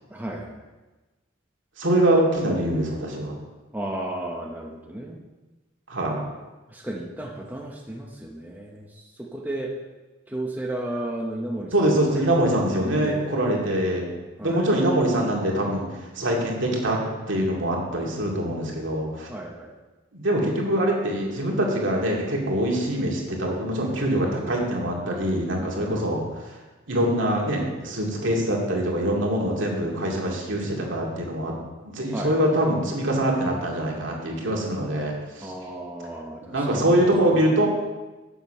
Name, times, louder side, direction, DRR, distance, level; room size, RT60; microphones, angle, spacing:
voice 1, 0.1-0.6 3.7-5.2 6.7-9.7 10.3-12.3 12.8-13.3 14.4-14.6 19.3-19.7 25.6-26.0 32.1-32.3 35.4-36.9, right 1 dB, 10° right, -1 dB, 0.8 m, -34 dB
voice 2, 1.8-3.4 5.9-6.2 11.7-14.1 14.4-17.0 17.3-19.3 20.1-26.6 26.9-31.5 31.8-35.5 36.5-37.7, right 1 dB, 65° right, -1 dB, 2.3 m, -24 dB
8.2 x 7.2 x 5.6 m, 1.2 s
head